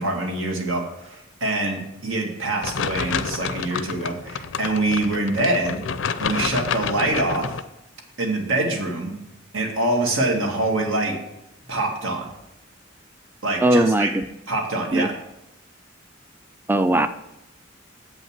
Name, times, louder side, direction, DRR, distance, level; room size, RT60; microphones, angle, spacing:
voice 1, 0.0-5.8 6.2-7.6 8.2-9.2 9.5-11.2 11.7-12.3 13.4-14.1 14.5-15.2, right 2 dB, 80° right, 1 dB, 2.1 m, -25 dB
sound 1, 2.6-7.6, left 6 dB, 70° left, 0.5 m, -29 dB
voice 2, 13.6-14.2 14.9-15.1 16.7-17.1, right 1 dB, 10° right, 10 dB, 0.4 m, -19 dB
8.0 x 5.4 x 7.4 m, 0.86 s
head